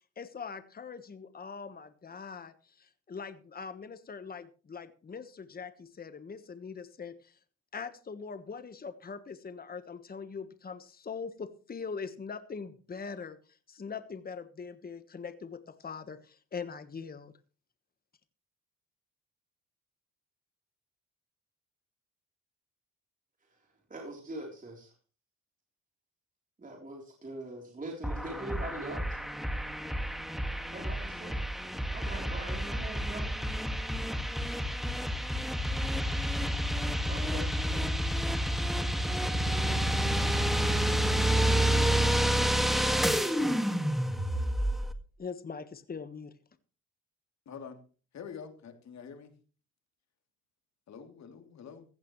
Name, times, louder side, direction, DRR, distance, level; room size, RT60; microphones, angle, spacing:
voice 1, 0.2-7.4 7.7-17.3 45.2-46.3, left 5 dB, 30° left, 11 dB, 1.3 m, -42 dB
voice 2, 23.9-24.9 26.6-29.0 30.7-31.5 31.9-33.5 37.1-37.9, right 1 dB, 25° right, 0 dB, 3.6 m, -42 dB
sound 1, 28.0-44.9, equal, ahead, 1.8 m, -29 dB
voice 3, 47.5-47.8 48.1-49.3 50.9-51.8, left 6 dB, 60° left, 5 dB, 3.0 m, -46 dB
15.5 x 14.5 x 3.1 m, 0.37 s
cardioid pair, 90°, 30 cm